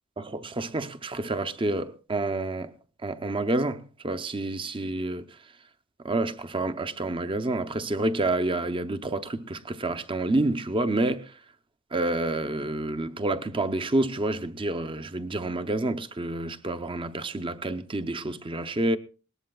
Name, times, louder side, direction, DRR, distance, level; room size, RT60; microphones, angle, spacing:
voice 1, 0.2-2.7 3.0-5.2 6.0-11.2 11.9-19.0, right 2 dB, 25° right, 0.7 m, -28 dB
20.5 x 18.5 x 2.3 m
head